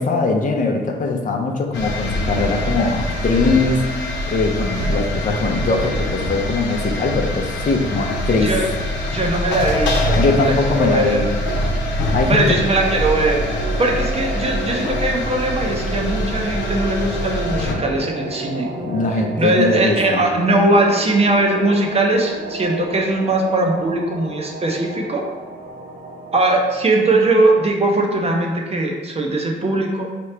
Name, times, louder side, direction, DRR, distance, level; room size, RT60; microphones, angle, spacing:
voice 1, 0.0-3.8 4.3-8.5 10.2-11.3 12.1-12.6 18.8-20.2, left 3 dB, 45° left, 2 dB, 0.6 m, -21 dB
sound 1, 1.7-17.7, left 1 dB, 80° left, 0.9 m, -24 dB
voice 2, 9.0-11.2 12.3-18.7 19.4-25.2 26.3-30.1, right 2 dB, 30° right, 1 dB, 0.7 m, -20 dB
sound 2, 12.6-27.6, right 1 dB, 55° right, 1.1 m, -32 dB
4.6 x 2.9 x 3.3 m, 1.4 s
cardioid pair, 80°, 19 cm